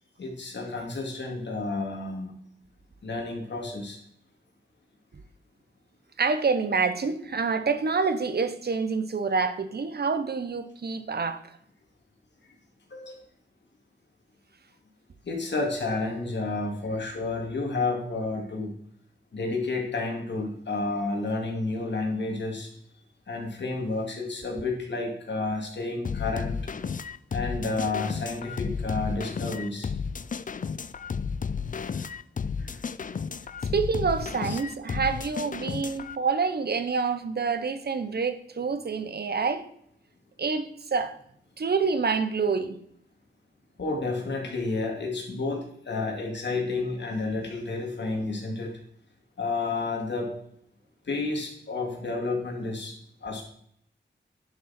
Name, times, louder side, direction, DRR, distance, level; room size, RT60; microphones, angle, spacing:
voice 1, 0.2-2.3 3.0-4.0 12.9-13.2 15.2-18.7 19.3-22.7 23.3-26.6 27.3-29.9 31.8-32.1 32.6-32.8 34.4-34.6 43.8-48.8 49.4-50.3 51.0-53.0 53.2-53.4, left 3 dB, 65° left, 2.6 m, -31 dB
voice 2, 6.2-11.4 33.7-39.6 40.4-41.1 41.6-42.8, right 5 dB, 55° right, 1.0 m, -27 dB
sound 1, 26.0-36.2, left 6 dB, 45° left, 0.5 m, -33 dB
10.5 x 7.1 x 4.4 m
wide cardioid pair, 105°, 20 cm